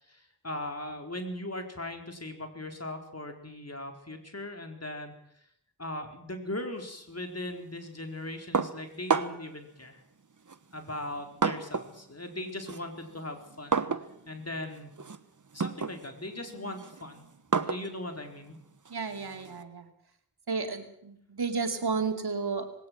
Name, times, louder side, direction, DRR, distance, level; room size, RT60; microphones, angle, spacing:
voice 1, 0.0-5.5 5.8-10.0 10.7-13.8 14.3-14.9 15.5-17.2 17.5-18.6, left 1 dB, 40° left, 5 dB, 4.4 m, -39 dB
sound 1, 8.5-9.6 10.5-12.0 12.3-19.6, right 5 dB, 55° right, 1.3 m, -33 dB
voice 2, 18.9-19.9 20.5-22.9, right 4 dB, 90° right, 5 dB, 2.6 m, -32 dB
20.0 x 18.0 x 7.7 m, 0.69 s
cardioid pair, 40°, 38 cm